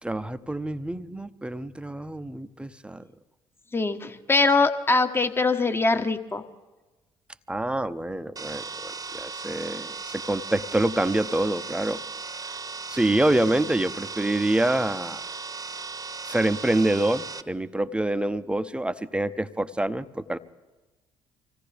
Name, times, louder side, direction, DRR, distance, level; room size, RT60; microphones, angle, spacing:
voice 1, 0.0-3.0 7.5-12.0 12.9-15.2 16.3-20.4, right 1 dB, 10° right, 12 dB, 0.8 m, -26 dB
voice 2, 3.7-6.4, left 3 dB, 20° left, 9 dB, 1.1 m, -22 dB
sound 1, 8.4-17.4, right 4 dB, 30° right, 1.0 m, -37 dB
25.0 x 17.0 x 3.4 m, 1.2 s
hypercardioid pair, 50°, 12 cm